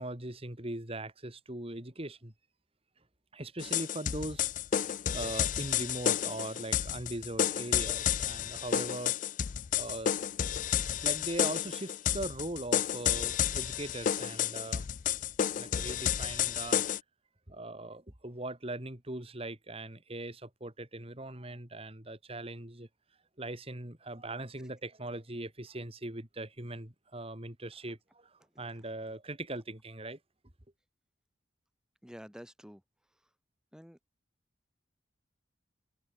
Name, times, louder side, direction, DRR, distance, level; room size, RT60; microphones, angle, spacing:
voice 1, 0.0-2.3 3.3-4.5 5.1-9.2 9.7-10.1 11.0-14.9 15.6-16.8 17.5-22.9 23.4-30.2, right 1 dB, 30° right, 2.9 m, -40 dB
sound 1, 3.6-17.0, left 9 dB, 45° left, 0.4 m, -31 dB
voice 2, 28.4-28.9 32.0-32.8 33.1-33.3 33.7-34.0, equal, 5° right, 3.6 m, -51 dB
head